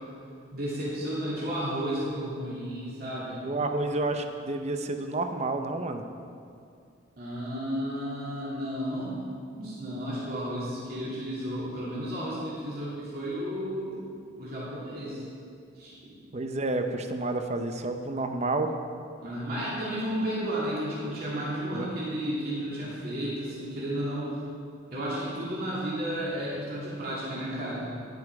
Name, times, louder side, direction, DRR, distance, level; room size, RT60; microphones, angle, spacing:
voice 1, 0.5-3.4 7.2-9.2 9.5-14.0 14.3-15.2 15.8-16.1 19.2-24.3 24.9-27.8, equal, 50° right, -8 dB, 2.9 m, -33 dB
voice 2, 3.4-6.0 16.3-18.7 21.7-21.9, right 2 dB, 35° right, 7 dB, 0.7 m, -30 dB
11.0 x 9.3 x 4.8 m, 2.4 s
head